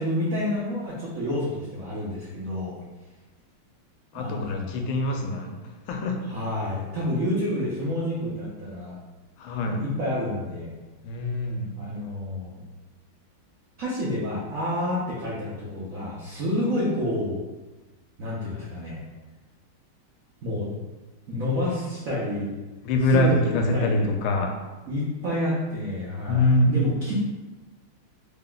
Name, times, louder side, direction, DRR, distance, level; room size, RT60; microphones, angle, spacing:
voice 1, 0.0-2.8 4.1-4.8 6.3-9.0 9.6-10.7 11.8-12.6 13.8-17.4 18.2-19.0 20.4-20.7 21.3-22.5 23.1-24.1 24.9-27.1, left 1 dB, 80° right, -7 dB, 0.7 m, -29 dB
voice 2, 4.1-5.6 5.9-6.2 9.4-9.8 11.0-11.7 22.8-24.5 26.3-26.7, left 1 dB, 80° left, 3 dB, 1.3 m, -24 dB
3.4 x 2.2 x 3.7 m, 1.2 s
omnidirectional pair, 2.3 m